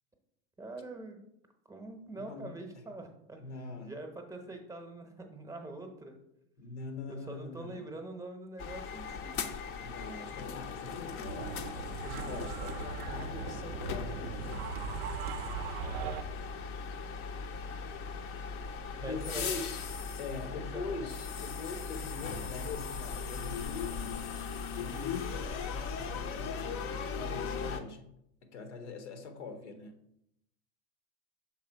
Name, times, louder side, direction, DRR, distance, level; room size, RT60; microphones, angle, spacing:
voice 1, 0.6-1.2 1.7-3.4 3.7-6.2 7.1-9.5 19.0-19.5 20.7-20.9, right 2 dB, 10° right, 4 dB, 0.8 m, -44 dB
voice 2, 2.1-2.5 2.8-2.9 3.4-3.9 6.6-7.8 9.8-11.6 12.0-14.4 19.0-19.8 20.2-24.5 24.8-28.1 28.4-30.0, left 4 dB, 85° left, 7 dB, 1.1 m, -43 dB
sound 1, 8.6-27.8, left 5 dB, 40° left, 0.6 m, -38 dB
sound 2, 11.2-16.2, right 8 dB, 60° right, 0.5 m, -40 dB
6.0 x 3.4 x 4.5 m, 0.77 s
supercardioid pair, 115°, 34 cm